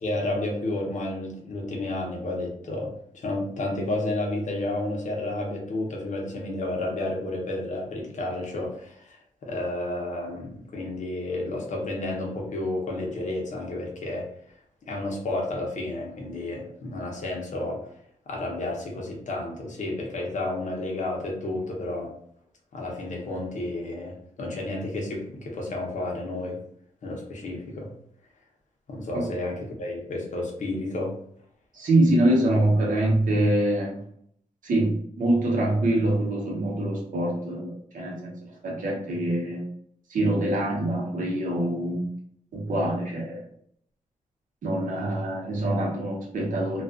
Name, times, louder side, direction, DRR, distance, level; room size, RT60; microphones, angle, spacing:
voice 1, 0.0-14.3 14.9-17.8 18.3-22.1 22.7-26.6 27.0-27.9 28.9-31.1, left 2 dB, 65° left, -1 dB, 0.8 m, -31 dB
voice 2, 31.7-34.0 34.6-38.3 38.6-39.6 40.1-42.1 42.5-43.4 44.6-46.8, right 1 dB, 75° right, -3 dB, 0.8 m, -24 dB
2.4 x 2.3 x 2.4 m, 0.66 s
wide cardioid pair, 105°, 14 cm